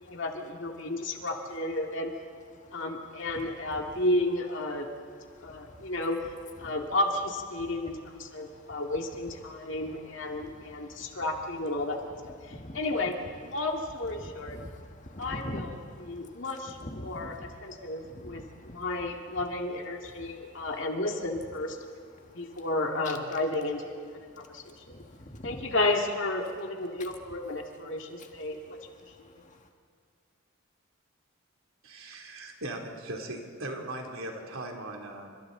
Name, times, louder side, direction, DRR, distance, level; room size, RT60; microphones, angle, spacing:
voice 1, 0.0-2.1 2.7-4.9 5.4-6.2 6.6-12.2 12.5-13.2 13.4-14.6 15.2-21.8 22.3-24.0 24.4-25.0 25.4-29.1, left 2 dB, 60° left, 2 dB, 2.3 m, -32 dB
voice 2, 5.3-5.9 6.6-6.7 7.5-7.7 8.2-8.8 9.5-11.2 12.4-12.8 14.1-18.9 20.2-20.7 22.2-22.6 23.0-23.2 24.3-25.7 28.2-28.3 29.0-29.7, left 1 dB, 35° left, 3 dB, 1.7 m, -46 dB
voice 3, 31.8-35.4, right 1 dB, 75° right, 1 dB, 3.0 m, -39 dB
30.0 x 25.5 x 4.0 m, 2.2 s
head